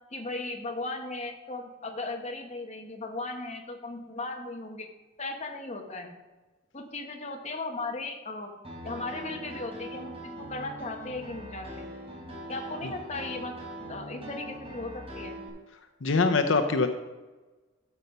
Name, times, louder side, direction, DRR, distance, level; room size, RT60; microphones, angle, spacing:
voice 1, 0.1-4.9 5.2-6.1 6.7-8.5 8.8-11.8 12.5-13.5 13.9-15.4, left 2 dB, 35° left, 3 dB, 1.2 m, -37 dB
Piano, 8.6-15.5, equal, 30° right, 3.3 m, -41 dB
voice 2, 16.0-16.9, left 4 dB, 80° left, 7 dB, 0.7 m, -23 dB
12.5 x 5.4 x 5.4 m, 1.2 s
head